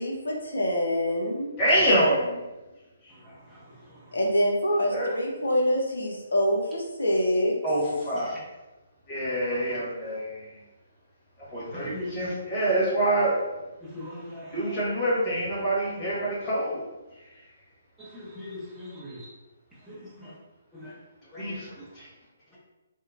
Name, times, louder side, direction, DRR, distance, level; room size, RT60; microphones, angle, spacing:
voice 1, 0.0-1.5 4.1-7.5, equal, 80° left, 0 dB, 0.6 m, -25 dB
voice 2, 1.6-2.4 4.9-5.1 7.6-8.3 9.1-10.4 11.5-13.3 14.5-16.8 21.3-21.7 22.0-22.1, right 1 dB, 30° left, -8 dB, 1.3 m, -26 dB
voice 3, 13.8-14.8 18.1-19.2 20.8-20.9 21.3-21.5, left 2 dB, 5° right, -9 dB, 0.6 m, -39 dB
2.8 x 2.0 x 2.4 m, 1.1 s
figure-of-eight pair, 140°, 0 cm